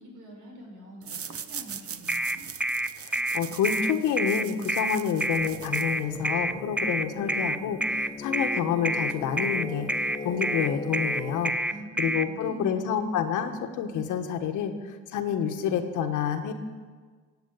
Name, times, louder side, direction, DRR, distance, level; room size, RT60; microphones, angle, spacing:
voice 1, 0.0-2.4 11.7-13.0, equal, 85° right, -2 dB, 6.0 m, -45 dB
sound 1, 1.0-6.3, right 8 dB, 50° right, 0.9 m, -41 dB
sound 2, 2.1-12.3, right 1 dB, 5° right, 0.5 m, -28 dB
voice 2, 3.0-9.9 10.2-11.5 12.0-16.5, left 7 dB, 85° left, 7 dB, 1.5 m, -28 dB
sound 3, 5.4-11.5, left 4 dB, 15° left, 1.4 m, -39 dB
16.5 x 8.1 x 8.3 m, 1.5 s
cardioid pair, 90°, 30 cm